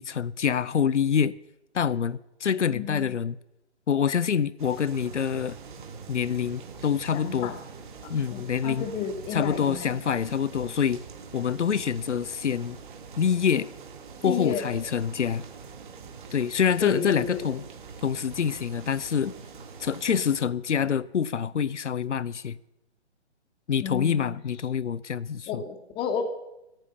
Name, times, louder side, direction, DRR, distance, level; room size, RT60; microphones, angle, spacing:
voice 1, 0.0-1.3 1.7-3.4 3.9-5.6 6.1-7.5 8.1-8.9 9.3-11.0 11.3-12.8 13.2-13.7 14.2-15.4 16.3-17.6 18.0-19.3 19.8-22.6 23.7-25.6, left 7 dB, 90° left, 0.5 m, -26 dB
voice 2, 2.7-3.1 7.1-7.5 8.0-9.9 14.2-14.7 16.8-17.4 23.8-24.3 25.5-26.2, left 7 dB, 15° left, 1.1 m, -32 dB
sound 1, 4.6-20.4, right 5 dB, 45° right, 1.8 m, -44 dB
13.0 x 8.9 x 6.8 m
figure-of-eight pair, 135°, 34 cm